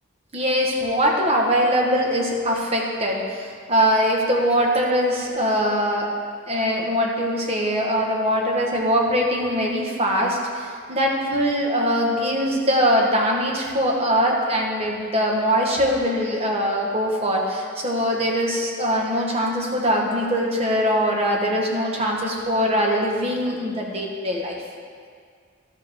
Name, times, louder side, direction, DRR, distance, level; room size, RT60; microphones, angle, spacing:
voice 1, 0.3-6.1 6.5-24.5, equal, 30° right, -1 dB, 1.2 m, -22 dB
12.5 x 7.6 x 3.5 m, 2.1 s
head